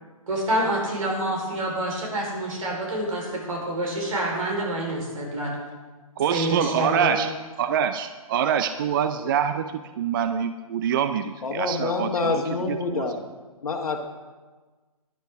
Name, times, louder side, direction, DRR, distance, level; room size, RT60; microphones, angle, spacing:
voice 1, 0.3-5.5 6.3-7.2, right 1 dB, 65° right, -1 dB, 3.9 m, -27 dB
voice 2, 6.2-7.3 7.6-12.4 12.9-13.1, right 8 dB, 35° right, 9 dB, 0.4 m, -25 dB
voice 3, 11.4-13.2 13.6-14.0, left 3 dB, 75° left, 3 dB, 1.3 m, -27 dB
11.0 x 10.5 x 3.5 m, 1.3 s
hypercardioid pair, 140°, 19 cm